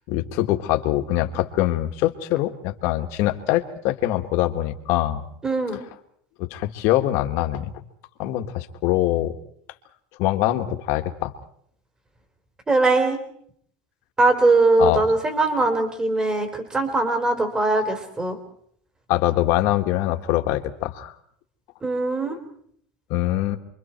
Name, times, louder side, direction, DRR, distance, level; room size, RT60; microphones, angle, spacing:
voice 1, 0.1-5.2 6.4-7.8 8.2-9.4 10.2-11.3 14.8-15.1 19.1-21.1 22.3-22.4 23.1-23.6, left 14 dB, 55° left, 6 dB, 1.9 m, -23 dB
voice 2, 5.4-5.8 12.7-13.2 14.2-18.4 21.8-22.4, right 2 dB, 15° right, 6 dB, 4.1 m, -21 dB
29.5 x 23.5 x 4.6 m, 0.67 s
supercardioid pair, 135°, 5 cm